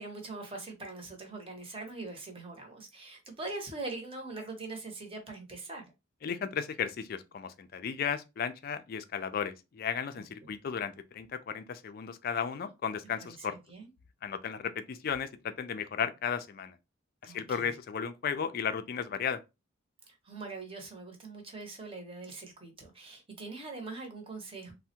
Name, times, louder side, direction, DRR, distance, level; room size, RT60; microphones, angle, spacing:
voice 1, 0.0-5.8 10.1-10.5 13.2-13.9 17.2-17.7 20.2-24.7, right 3 dB, 30° right, 0.8 m, -42 dB
voice 2, 6.2-13.6 14.2-16.7 17.2-19.4, left 7 dB, 50° left, 0.3 m, -35 dB
3.3 x 2.1 x 2.7 m
head